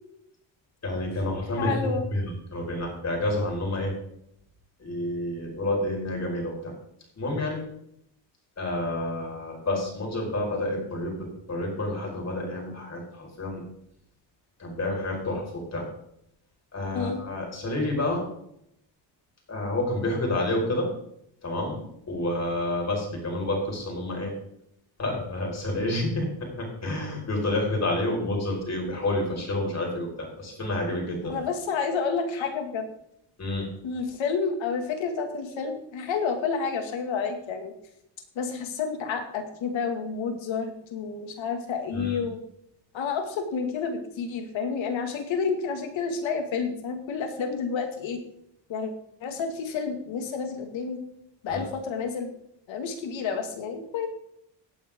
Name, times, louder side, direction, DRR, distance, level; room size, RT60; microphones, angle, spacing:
voice 1, 0.8-3.9 4.8-6.7 7.2-7.6 8.6-13.6 14.6-15.9 16.7-18.3 19.5-20.9 21.4-24.3 25.0-31.4 32.4-32.5 33.4-33.6 41.9-42.2 51.5-51.6, left 1 dB, 35° left, 0 dB, 5.1 m, -29 dB
voice 2, 1.6-2.0 16.9-17.2 31.3-32.9 33.8-37.7 38.4-42.4 42.9-48.2 48.7-48.9 49.2-51.0 51.4-52.3 52.7-54.1, left 5 dB, 80° left, 5 dB, 2.3 m, -30 dB
16.5 x 8.8 x 3.7 m, 0.76 s
cardioid pair, 115°, 46 cm